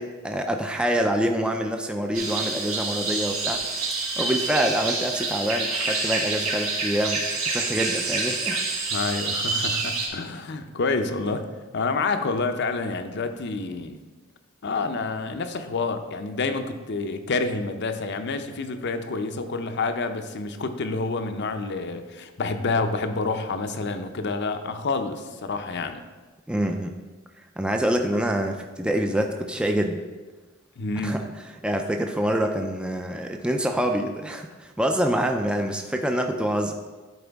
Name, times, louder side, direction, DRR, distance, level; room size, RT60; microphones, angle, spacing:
voice 1, 0.0-3.6 4.2-8.6 26.5-26.9 27.6-30.0 31.0-31.2 31.6-36.7, right 1 dB, 5° right, 4 dB, 0.4 m, -26 dB
sound 1, 2.1-10.1, right 3 dB, 85° right, 1.7 m, -27 dB
voice 2, 8.9-11.4 11.7-14.0 14.6-26.0 30.8-31.2, left 3 dB, 55° left, 8 dB, 0.6 m, -28 dB
12.0 x 4.3 x 3.5 m, 1.3 s
head